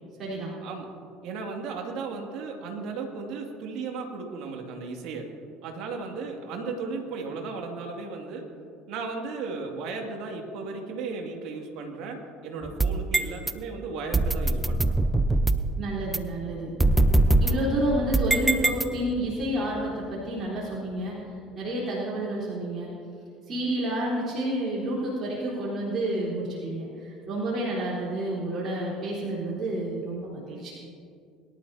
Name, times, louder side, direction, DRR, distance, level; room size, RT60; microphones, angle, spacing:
voice 1, 0.2-0.6 15.8-16.7 17.4-21.1 21.5-22.9 23.5-30.8, right 1 dB, 35° right, -8 dB, 3.9 m, -29 dB
voice 2, 1.2-5.3 5.6-8.5 8.9-14.9, right 4 dB, 60° right, 2 dB, 2.3 m, -35 dB
sound 1, 12.6-13.5 14.1-15.7 16.1-16.2 16.8-19.3, right 2 dB, 15° right, 0.7 m, -23 dB
22.5 x 12.0 x 2.8 m, 2.5 s
hypercardioid pair, 70°, 0 cm